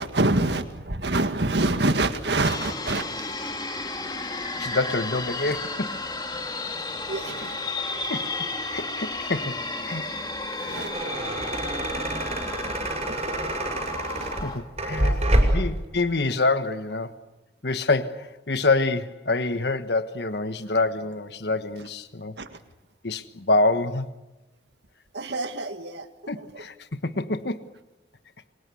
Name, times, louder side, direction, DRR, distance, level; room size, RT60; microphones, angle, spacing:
voice 1, 0.0-3.1 3.4-3.5 7.1-7.7 10.6-10.9 13.1-13.4 14.1-14.4 14.9-15.5 22.4-22.6 25.1-26.1 26.5-26.6, right 2 dB, 70° right, 8 dB, 1.8 m, -27 dB
sound 1, 2.4-14.6, left 3 dB, 25° left, 2.0 m, -33 dB
voice 2, 4.3-6.0 8.1-8.4 8.7-10.0 10.6-10.8 14.4-15.2 15.5-17.1 17.6-22.3 23.0-24.1 26.3-27.7, left 3 dB, 65° left, 11 dB, 1.4 m, -26 dB
sound 2, 10.6-15.8, right 1 dB, 35° right, 6.1 m, -26 dB
29.5 x 24.5 x 7.0 m, 1.1 s
head